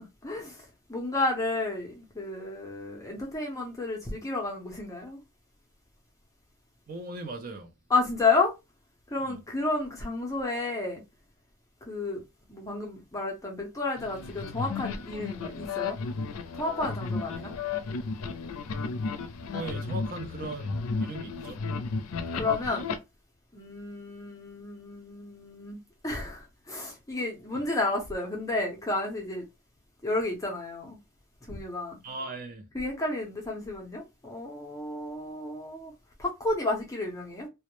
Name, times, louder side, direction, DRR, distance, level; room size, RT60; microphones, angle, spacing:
voice 1, 0.2-0.6 0.9-5.2 7.9-8.5 9.1-11.0 11.9-12.2 12.5-16.0 16.5-17.5 22.3-22.8 23.5-29.4 30.0-31.0 31.5-32.0 32.7-35.9 36.2-37.5, left 3 dB, 15° left, 0.5 m, -31 dB
voice 2, 6.9-7.7 9.3-9.4 19.5-21.6 27.5-27.6 32.0-32.7, right 3 dB, 45° right, 0.5 m, -38 dB
sound 1, 14.0-23.0, left 4 dB, 80° left, 0.4 m, -34 dB
2.1 x 2.0 x 2.9 m
head